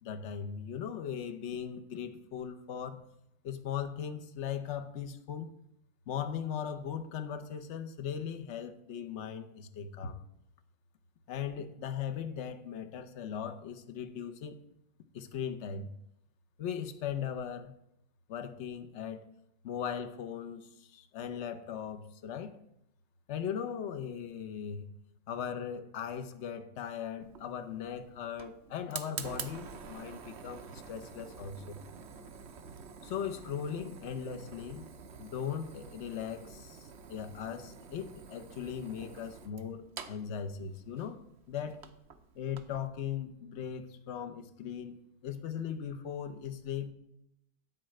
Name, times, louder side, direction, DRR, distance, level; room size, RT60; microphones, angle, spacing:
voice 1, 0.0-3.0 3.4-5.5 6.1-10.2 11.3-14.6 15.1-15.9 16.6-17.7 18.3-19.2 19.6-22.6 23.3-24.9 25.3-31.8 33.0-34.9 35.2-41.2 41.5-41.8 42.3-45.0 45.2-46.9, left 8 dB, 55° left, 8 dB, 0.8 m, -38 dB
Fire, 27.2-42.9, right 6 dB, 65° right, 0.6 m, -48 dB
9.6 x 4.5 x 7.6 m, 0.82 s
omnidirectional pair, 2.1 m